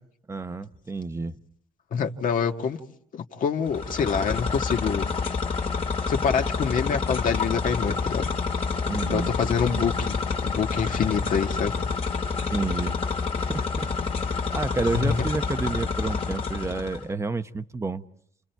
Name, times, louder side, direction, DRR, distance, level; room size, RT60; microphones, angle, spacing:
voice 1, 0.3-1.4 8.9-9.3 12.5-13.0 13.4-13.9 14.3-18.0, right 3 dB, 15° right, 10 dB, 0.9 m, -30 dB
voice 2, 1.9-2.8 3.1-5.1 6.1-8.3 9.1-11.7 14.9-15.2, left 6 dB, 50° left, 4 dB, 1.8 m, -26 dB
sound 1, 3.7-17.0, left 4 dB, 35° left, 2.1 m, -28 dB
29.5 x 28.5 x 4.6 m, 0.68 s
cardioid pair, 110°, 17 cm